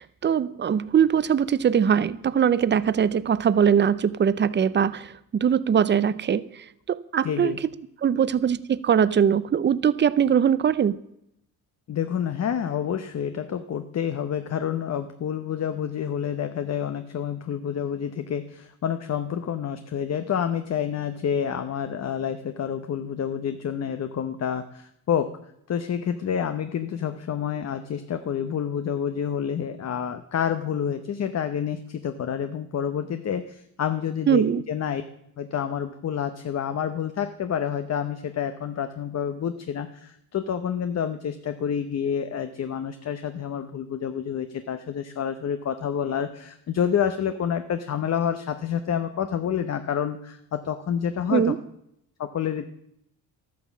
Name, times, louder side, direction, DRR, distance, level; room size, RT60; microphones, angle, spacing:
voice 1, 0.0-6.4 6.9-7.5 8.0-11.0 34.3-34.6 51.3-51.6, right 8 dB, 30° right, 0.6 m, -21 dB
voice 2, 7.2-7.6 11.9-25.3 25.7-35.0 35.4-51.5 52.2-52.6, left 8 dB, 45° left, 0.9 m, -28 dB
13.0 x 9.4 x 7.2 m
cardioid pair, 125°, 37 cm